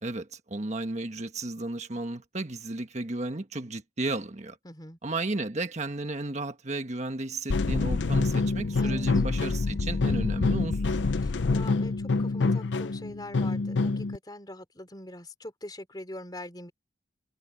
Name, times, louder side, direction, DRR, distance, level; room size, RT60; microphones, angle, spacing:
voice 1, 0.0-4.6 5.0-11.0, right 2 dB, 40° right, 1.4 m, -34 dB
voice 2, 4.6-5.0 8.7-9.1 11.2-16.7, left 1 dB, 20° left, 3.5 m, -43 dB
sound 1, 7.5-14.2, left 3 dB, 80° left, 0.6 m, -26 dB
head